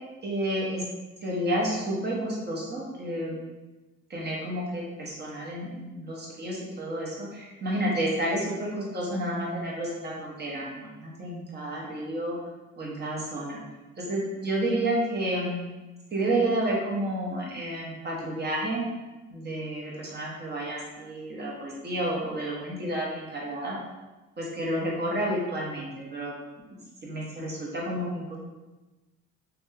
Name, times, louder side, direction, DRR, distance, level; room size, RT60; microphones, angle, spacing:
voice 1, 0.2-0.8 1.2-3.4 4.1-12.4 12.8-13.6 14.0-15.6 16.1-18.8 19.3-23.8 24.4-26.3 27.0-28.4, right 1 dB, 35° right, -4 dB, 1.0 m, -30 dB
2.9 x 2.3 x 3.2 m, 1.1 s
cardioid pair, 90°, 30 cm